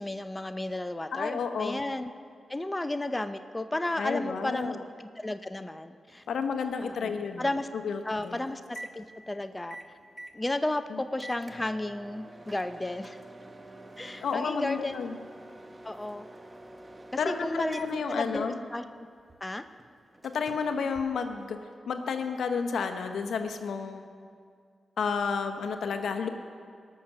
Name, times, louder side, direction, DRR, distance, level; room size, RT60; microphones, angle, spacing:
voice 1, 0.0-2.1 2.5-6.2 6.8-7.7 8.0-9.8 10.3-13.2 14.0-15.0 15.8-16.3 17.3-18.8 19.4-19.6, left 1 dB, 20° left, 9 dB, 0.5 m, -33 dB
voice 2, 1.1-1.8 4.0-4.8 6.3-7.4 7.8-8.4 10.9-11.0 14.2-15.2 17.2-18.6 20.2-21.6 21.9-24.1 25.0-26.3, left 5 dB, 80° left, 7 dB, 0.8 m, -31 dB
Microwave oven, 6.1-21.8, right 1 dB, 25° right, 0.9 m, -49 dB
19.0 x 6.5 x 6.0 m, 2.1 s
cardioid pair, 55°, 0 cm